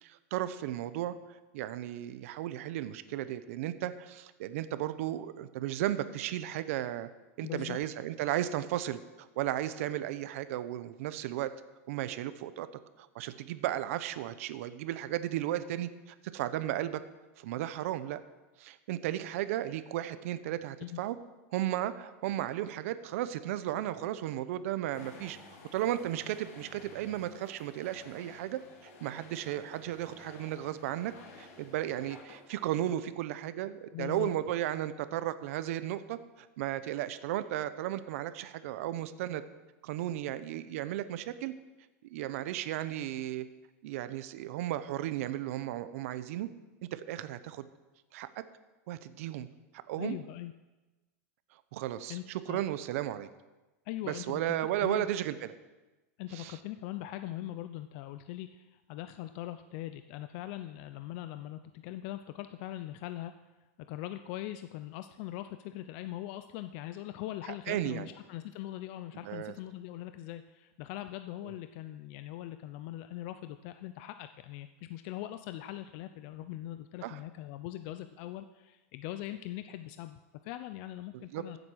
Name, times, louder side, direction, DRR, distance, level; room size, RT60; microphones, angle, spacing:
voice 1, 0.0-7.1 7.4-11.5 11.9-12.7 13.0-17.0 17.4-18.2 18.6-21.2 21.5-25.4 25.7-31.1 31.4-39.4 39.8-41.5 42.1-43.4 43.8-46.5 46.9-47.7 48.1-48.3 48.9-49.5 49.9-50.2 51.7-53.3 54.1-55.5 56.3-56.6 67.5-68.1 69.2-69.5 77.0-77.2 81.1-81.4, right 13 dB, 65° right, 12 dB, 0.8 m, -35 dB
voice 2, 7.4-7.8 20.8-21.0 33.9-34.3 50.0-50.5 52.1-52.6 53.9-55.1 56.2-63.3 63.9-81.6, left 14 dB, 50° left, 10 dB, 0.6 m, -41 dB
sound 1, 24.9-33.1, left 3 dB, 70° left, 3.6 m, -53 dB
14.5 x 8.0 x 6.3 m, 1.1 s
supercardioid pair, 145°, 8 cm